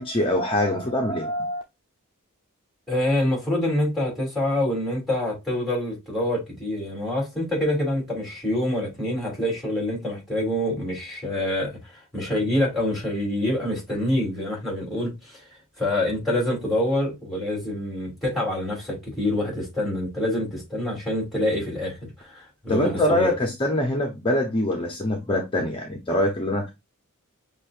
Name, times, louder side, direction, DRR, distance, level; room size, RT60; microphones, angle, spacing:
voice 1, 0.0-1.6 22.7-26.7, left 1 dB, 25° left, 0.7 m, -24 dB
voice 2, 2.9-23.3, left 1 dB, ahead, 3.0 m, -26 dB
6.4 x 2.9 x 2.4 m
head